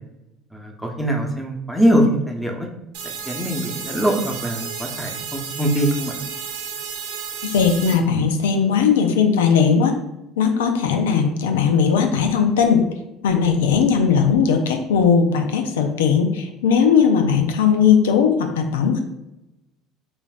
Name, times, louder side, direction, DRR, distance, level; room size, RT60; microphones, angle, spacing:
voice 1, 0.5-2.7 3.3-6.1, equal, 5° left, 2 dB, 0.8 m, -22 dB
sound 1, 2.9-7.9, right 6 dB, 75° right, 0.6 m, -32 dB
voice 2, 7.4-9.9 10.4-12.8 13.2-19.0, left 6 dB, 85° left, 5 dB, 0.4 m, -18 dB
5.0 x 2.5 x 2.4 m, 0.91 s
hypercardioid pair, 75°, 0 cm